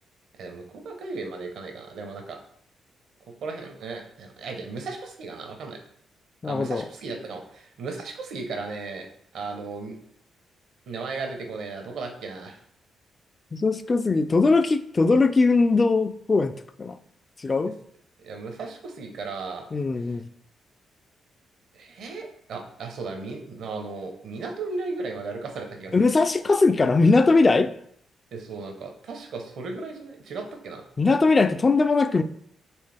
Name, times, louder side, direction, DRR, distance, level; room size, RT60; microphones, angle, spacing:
voice 1, 0.4-2.4 3.4-5.8 6.5-9.1 9.3-9.9 10.9-12.6 18.2-19.6 21.7-25.9 28.3-30.8, right 3 dB, 75° right, 0.8 m, -35 dB
voice 2, 6.4-6.8 13.5-16.5 16.8-17.0 17.4-17.8 19.7-20.2 25.9-27.7 31.0-32.2, left 3 dB, 35° left, 0.3 m, -20 dB
4.4 x 2.9 x 3.4 m
cardioid pair, 70°, 0 cm